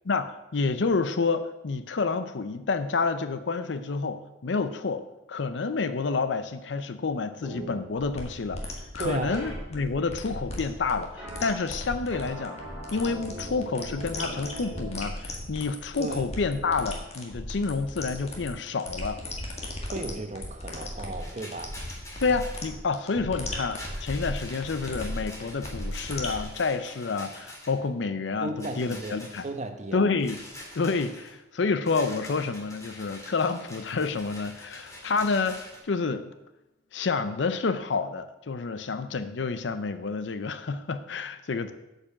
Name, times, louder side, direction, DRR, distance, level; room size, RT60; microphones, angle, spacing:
voice 1, 0.1-5.0 5.3-12.6 12.9-19.2 22.2-29.4 29.9-30.4 30.8-36.3 36.9-41.7, left 4 dB, 75° left, 11 dB, 0.6 m, -29 dB
sound 1, 7.4-7.8 9.3-9.5 11.2-11.5 12.1-14.9, right 1 dB, 10° right, 3.5 m, -40 dB
sound 2, 8.0-26.4, left 1 dB, 35° left, 1.7 m, -37 dB
voice 2, 9.0-9.4 16.0-16.3 19.8-21.8 23.2-23.3 28.4-30.0, right 2 dB, 40° right, 6 dB, 1.0 m, -35 dB
Rattle, 21.2-22.7 23.7-27.9 28.6-29.5 30.2-31.3 31.8-35.8, left 1 dB, 15° left, 2.0 m, -45 dB
8.5 x 5.4 x 7.3 m, 0.97 s
head